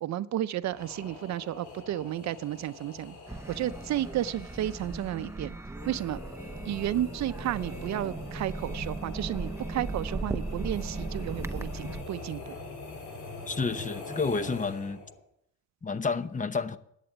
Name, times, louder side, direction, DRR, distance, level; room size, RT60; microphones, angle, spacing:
voice 1, 0.0-3.2 3.5-5.6 5.9-6.2 6.7-12.5, right 12 dB, 65° right, 0.5 m, -32 dB
sound 1, 0.6-15.2, left 3 dB, 75° left, 3.8 m, -44 dB
sound 2, 3.3-12.0, right 2 dB, 10° right, 0.6 m, -37 dB
voice 2, 13.5-15.0 15.8-16.8, left 4 dB, 25° left, 0.8 m, -30 dB
11.0 x 8.3 x 7.9 m
cardioid pair, 90°, 30 cm